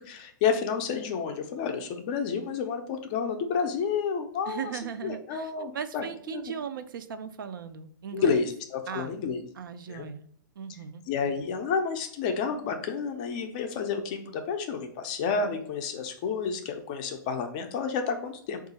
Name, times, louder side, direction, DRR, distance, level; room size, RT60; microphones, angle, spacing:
voice 1, 0.1-4.7 5.0-6.5 8.1-9.4 9.9-10.0 11.1-18.7, left 6 dB, 25° left, 6 dB, 0.3 m, -30 dB
voice 2, 4.5-8.5 8.9-9.1 9.6-10.2 10.6-11.0, right 7 dB, 90° right, 10 dB, 0.4 m, -38 dB
3.6 x 2.4 x 3.9 m, 0.64 s
hypercardioid pair, 170°, 11 cm